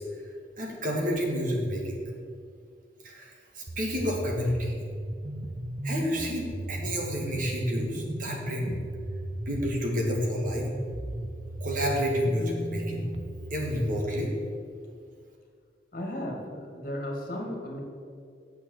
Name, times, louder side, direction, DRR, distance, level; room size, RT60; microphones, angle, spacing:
voice 1, 0.6-2.0 3.0-3.3 3.6-4.7 5.8-8.8 9.5-10.7 11.6-13.1 13.5-14.3, equal, 50° right, 0 dB, 1.8 m, -29 dB
sound 1, 3.7-13.8, right 1 dB, 35° right, 0.6 m, -36 dB
voice 2, 15.9-17.8, left 1 dB, 50° left, 1 dB, 2.1 m, -35 dB
8.9 x 7.0 x 6.6 m, 2.2 s
head